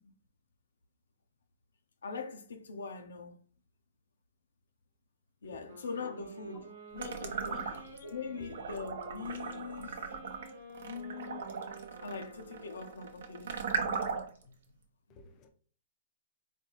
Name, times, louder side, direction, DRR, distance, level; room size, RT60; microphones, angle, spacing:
voice 1, 2.0-3.4 5.4-6.7 6.9-10.0 10.8-11.4 12.0-13.5, left 5 dB, 85° left, 0.6 m, -42 dB
sound 1, 5.6-13.3, right 1 dB, 85° right, 1.2 m, -51 dB
sound 2, 7.0-8.1 8.5-14.4, right 5 dB, 70° right, 0.7 m, -37 dB
voice 2, 15.1-15.5, left 4 dB, 30° left, 0.5 m, -51 dB
4.1 x 2.3 x 2.9 m
hypercardioid pair, 135°, 0 cm